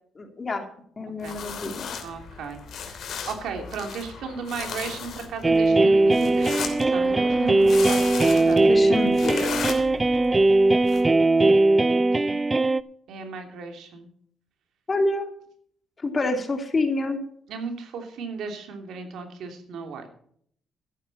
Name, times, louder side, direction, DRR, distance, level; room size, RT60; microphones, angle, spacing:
voice 1, 0.2-0.7 1.0-1.9 8.7-9.7 14.9-15.3 16.0-17.2, left 2 dB, 30° left, 5 dB, 2.8 m, -27 dB
sound 1, 1.2-11.0, left 7 dB, 65° left, 3.0 m, -36 dB
voice 2, 2.0-8.7 12.1-12.4 13.1-14.1 17.5-20.1, right 5 dB, 75° right, 4 dB, 3.0 m, -35 dB
sound 2, 5.4-12.8, right 2 dB, 20° right, 0.5 m, -19 dB
13.5 x 11.0 x 4.2 m, 0.62 s
cardioid pair, 90°, 0 cm